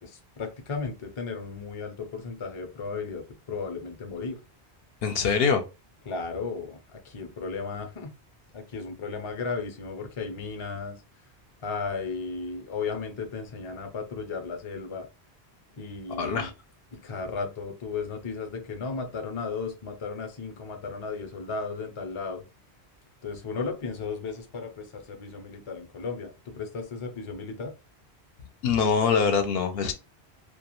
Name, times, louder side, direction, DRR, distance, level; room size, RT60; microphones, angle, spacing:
voice 1, 0.0-4.4 6.1-8.1 8.5-11.0 11.6-15.1 15.8-16.5 16.9-22.4 23.2-27.7, left 4 dB, 40° left, 0.5 m, -35 dB
voice 2, 5.0-5.6 16.2-16.5 28.6-29.9, left 6 dB, 70° left, 0.7 m, -23 dB
2.3 x 2.2 x 2.9 m
omnidirectional pair, 1.1 m